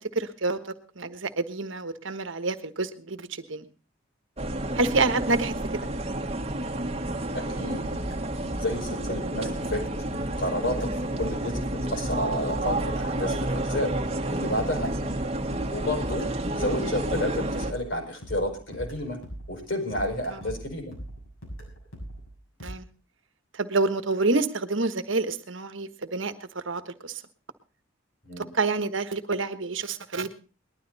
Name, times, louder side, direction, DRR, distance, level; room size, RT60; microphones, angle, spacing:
voice 1, 0.1-3.6 4.7-5.9 15.1-15.2 20.3-20.5 22.6-22.8 23.5-26.3 26.6-27.2 28.4-30.3, right 3 dB, 65° right, 10 dB, 1.3 m, -28 dB
sound 1, 4.4-17.7, right 1 dB, 30° right, 1.7 m, -30 dB
voice 2, 7.3-7.8 8.6-9.8 10.4-10.9 11.2-11.6 11.9-13.9 14.3-14.9 15.7-16.2 16.6-19.2 19.5-20.9 28.2-28.5, left 1 dB, 60° left, 2 dB, 5.5 m, -30 dB
sound 2, 7.9-19.7 19.9-22.7, right 1 dB, 85° left, 6.9 m, -40 dB
20.0 x 12.0 x 4.1 m, 0.37 s
head